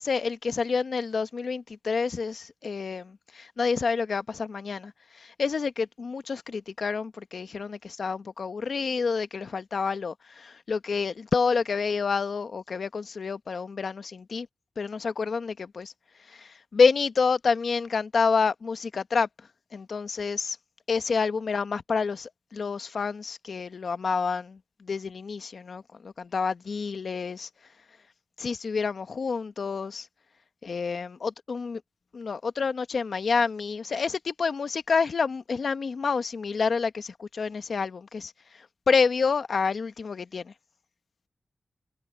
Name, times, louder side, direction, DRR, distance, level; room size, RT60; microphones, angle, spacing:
voice 1, 0.0-14.5 14.8-15.9 16.3-19.3 19.7-20.6 20.9-27.5 28.4-30.1 30.6-31.8 32.1-38.3 38.9-40.5, left 5 dB, 70° left, 1.0 m, -28 dB
wide cardioid pair, 100°, 0 cm